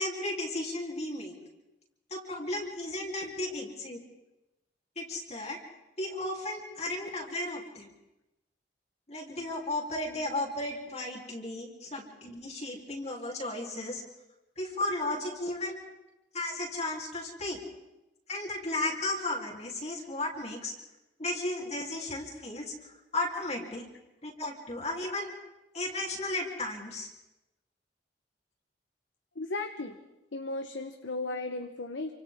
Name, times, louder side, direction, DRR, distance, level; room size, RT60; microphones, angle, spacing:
voice 1, 0.0-1.3 2.1-4.0 5.0-5.6 6.0-7.9 9.1-14.0 14.6-15.8 16.3-17.6 18.3-20.7 21.2-22.7 23.1-23.9 24.2-25.3 25.7-27.1, left 2 dB, 35° left, -2 dB, 3.5 m, -34 dB
voice 2, 29.3-30.0 30.3-32.1, left 2 dB, 90° left, 6 dB, 1.2 m, -36 dB
28.0 x 25.5 x 3.7 m, 0.99 s
head